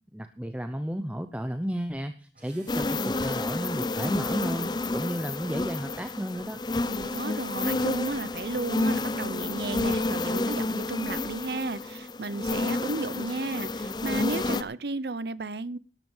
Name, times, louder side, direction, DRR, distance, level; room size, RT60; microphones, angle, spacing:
voice 1, 0.1-6.6, equal, 10° right, 0.7 m, -33 dB
sound 1, 2.3-10.8, right 1 dB, 50° right, 6.7 m, -59 dB
sound 2, 2.7-14.6, left 2 dB, 25° left, 0.6 m, -30 dB
voice 2, 6.9-15.8, right 3 dB, 70° right, 0.7 m, -33 dB
12.5 x 12.0 x 5.5 m
head